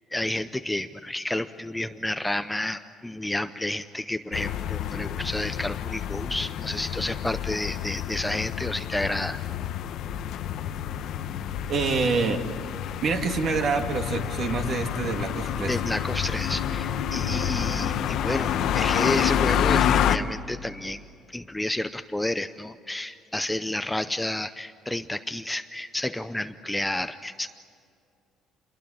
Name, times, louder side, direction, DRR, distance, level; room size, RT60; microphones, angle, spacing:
voice 1, 0.1-9.4 15.7-21.0 21.3-27.5, left 1 dB, 5° left, 10 dB, 0.6 m, -30 dB
sound 1, 4.3-20.2, left 9 dB, 65° left, 1.0 m, -28 dB
voice 2, 11.7-12.5 13.0-15.7, right 4 dB, 45° right, 4 dB, 2.5 m, -26 dB
28.0 x 21.5 x 8.7 m, 2.4 s
cardioid pair, 150°, 0 cm